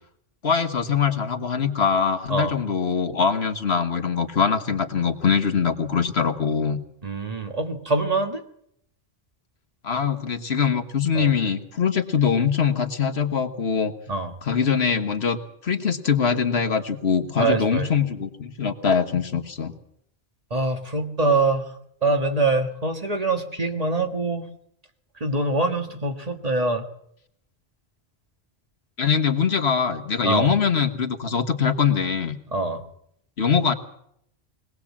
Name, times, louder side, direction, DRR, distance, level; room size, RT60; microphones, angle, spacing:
voice 1, 0.4-6.8 9.8-13.9 14.4-19.7 29.0-32.4 33.4-33.7, left 6 dB, 75° left, 7 dB, 1.7 m, -23 dB
voice 2, 7.0-8.4 11.1-11.3 14.1-14.3 17.4-17.9 20.5-21.7 22.0-24.4 25.2-26.9 30.2-30.5 32.5-32.8, right 3 dB, 35° right, 5 dB, 1.7 m, -24 dB
21.5 x 18.5 x 7.3 m, 0.72 s
omnidirectional pair, 1.1 m